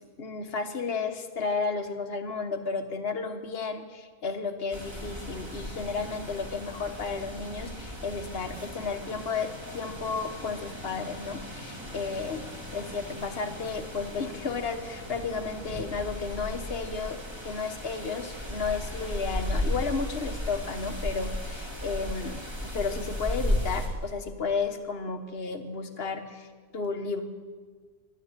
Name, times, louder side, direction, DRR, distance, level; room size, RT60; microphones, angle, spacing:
voice 1, 0.2-12.4 12.7-17.2 17.4-27.2, left 4 dB, 45° left, 7 dB, 1.3 m, -33 dB
sound 1, 4.7-23.9, left 1 dB, 20° right, 2.7 m, -36 dB
13.5 x 11.5 x 8.8 m, 1.5 s
omnidirectional pair, 1.5 m